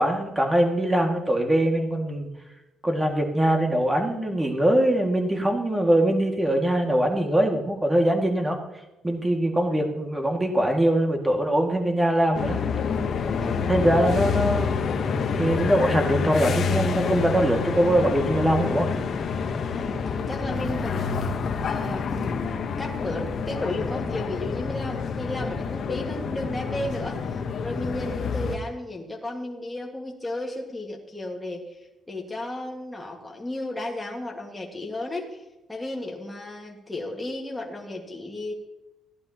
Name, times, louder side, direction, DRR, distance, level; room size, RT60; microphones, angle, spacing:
voice 1, 0.0-2.3 2.8-8.6 9.0-12.6 13.7-14.7 15.4-18.9, right 1 dB, 15° right, 3 dB, 1.9 m, -22 dB
sound 1, 12.3-28.6, left 5 dB, 60° left, 1.0 m, -28 dB
voice 2, 13.4-13.7 19.7-21.2 21.6-22.3 22.8-35.4 35.7-38.5, left 1 dB, 15° left, -1 dB, 1.6 m, -34 dB
16.0 x 11.0 x 2.8 m, 1.0 s
cardioid pair, 90°, 0 cm